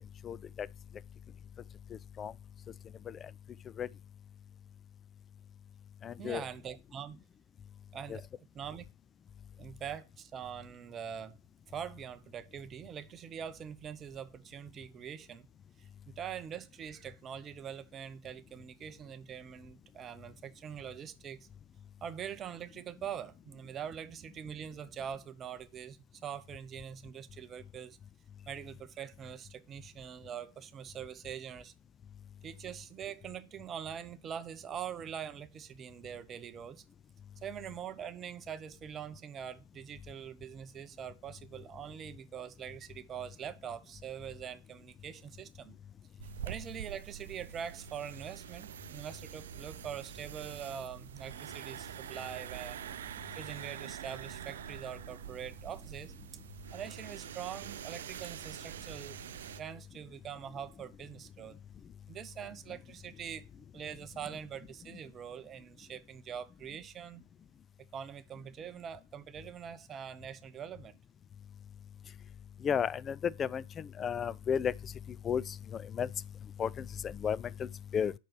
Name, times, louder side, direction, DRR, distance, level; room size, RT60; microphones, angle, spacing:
voice 1, 0.2-0.7 2.2-2.3 3.1-3.2 3.8-3.9 6.0-6.4 8.1-8.2 72.6-74.7 75.2-76.1 76.6-77.7 77.9-78.1, left 7 dB, 25° left, 0.3 m, -33 dB
voice 2, 6.2-7.2 7.9-8.3 8.5-8.9 9.6-11.4 11.7-15.5 15.8-15.9 16.2-21.5 22.0-28.0 28.5-31.7 32.4-36.8 37.4-45.8 46.4-52.8 53.3-56.1 56.7-59.2 59.5-61.6 62.1-63.5 63.7-67.2 67.9-71.0, right 8 dB, 25° right, 0.7 m, -43 dB
sound 1, 46.2-59.6, right 10 dB, 70° right, 0.4 m, -45 dB
6.0 x 4.6 x 6.0 m
hypercardioid pair, 100°, 0 cm